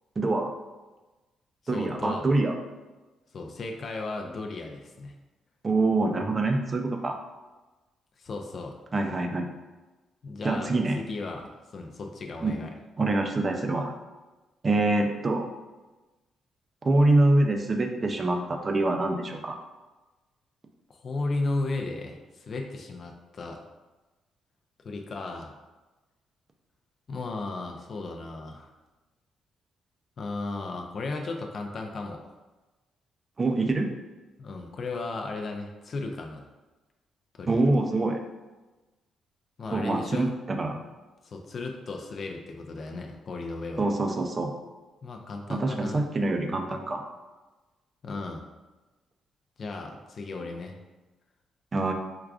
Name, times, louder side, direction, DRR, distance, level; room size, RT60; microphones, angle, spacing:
voice 1, 0.2-0.5 1.7-2.6 5.6-7.2 8.9-9.5 10.4-11.0 12.4-12.6 13.0-13.9 14.6-15.5 16.8-19.6 33.4-33.9 37.5-38.2 39.7-40.8 43.8-44.5 45.5-47.0 51.7-51.9, right 2 dB, 30° right, 4 dB, 0.4 m, -25 dB
voice 2, 1.6-2.3 3.3-5.1 8.2-8.7 10.2-12.7 20.9-23.6 24.8-25.5 27.1-28.7 30.2-32.2 34.4-36.5 37.4-37.6 39.6-40.3 41.2-43.8 45.0-46.0 48.0-48.4 49.6-50.8, left 3 dB, 50° left, 2 dB, 0.4 m, -35 dB
4.7 x 2.3 x 2.4 m, 1.1 s
cardioid pair, 90°, 0 cm